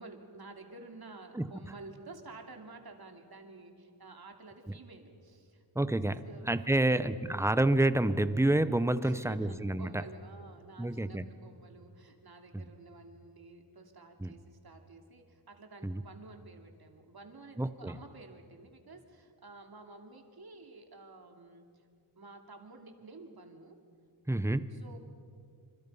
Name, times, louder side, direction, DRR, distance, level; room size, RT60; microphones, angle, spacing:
voice 1, 0.0-5.6 6.2-6.5 6.8-7.1 9.0-21.8 22.2-23.8 24.7-25.0, right 3 dB, 50° right, 4 dB, 2.7 m, -51 dB
voice 2, 5.7-10.0 10.8-11.3 12.5-12.6 14.2-14.3 15.8-16.0 17.6-17.9 24.3-24.7, right 1 dB, 5° right, 13 dB, 0.7 m, -28 dB
27.0 x 27.0 x 5.5 m, 2.3 s
wide cardioid pair, 130°, 48 cm